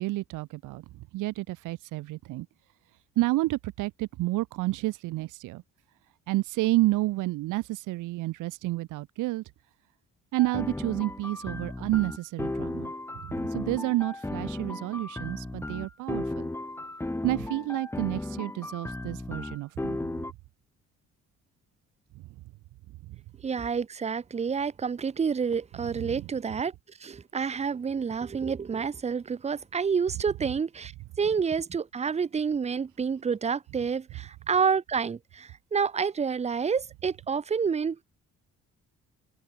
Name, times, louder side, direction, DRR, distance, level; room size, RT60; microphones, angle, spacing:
voice 1, 0.0-2.5 3.2-5.6 6.3-9.4 10.3-12.9 13.2-16.5 17.2-20.0 23.1-23.2 26.0-26.2, right 18 dB, 85° right, 0.6 m, -30 dB
sound 1, 10.4-20.3, left 2 dB, 10° left, 1.0 m, -35 dB
voice 2, 23.4-26.7 27.0-30.9 31.2-38.0, right 6 dB, 20° right, 0.5 m, -28 dB
cardioid pair, 90°, 30 cm